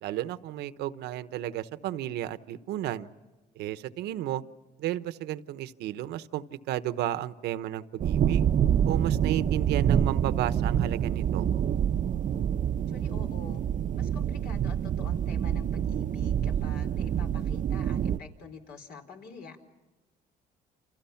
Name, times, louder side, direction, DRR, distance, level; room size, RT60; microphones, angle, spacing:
voice 1, 0.0-3.1 3.6-4.4 4.8-8.5 8.8-11.5, right 12 dB, 80° right, 13 dB, 1.1 m, -33 dB
sound 1, 8.0-18.2, right 9 dB, 50° right, 0.7 m, -27 dB
voice 2, 12.9-13.6 13.9-19.6, left 5 dB, 70° left, 4 dB, 4.5 m, -47 dB
29.5 x 28.0 x 5.8 m, 1.2 s
cardioid pair, 110°, 17 cm